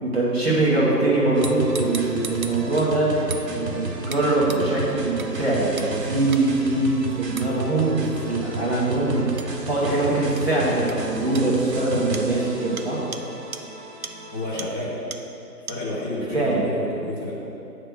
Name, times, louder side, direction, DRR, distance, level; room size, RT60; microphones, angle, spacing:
voice 1, 0.0-13.0 16.3-16.6, right 2 dB, 40° right, -7 dB, 1.6 m, -22 dB
sound 1, 1.3-14.9, right 2 dB, 80° right, 1.0 m, -33 dB
sound 2, 1.4-2.9 3.3-3.5 4.1-4.2 4.5-4.6 5.2-5.3 5.8-5.9 6.3-6.4 7.4-7.5 9.4-9.5 10.4-10.5 10.9-11.0 11.4-11.5 12.1-12.3 12.8-12.9 13.1-13.2 13.5-13.6 14.0-14.1 14.6-14.7 15.1-15.2 15.7-15.8, right 6 dB, 60° right, 0.5 m, -35 dB
voice 2, 14.3-15.0 15.7-17.3, left 1 dB, 15° left, -12 dB, 1.0 m, -30 dB
8.3 x 3.3 x 6.3 m, 2.8 s
figure-of-eight pair, 165°, 48 cm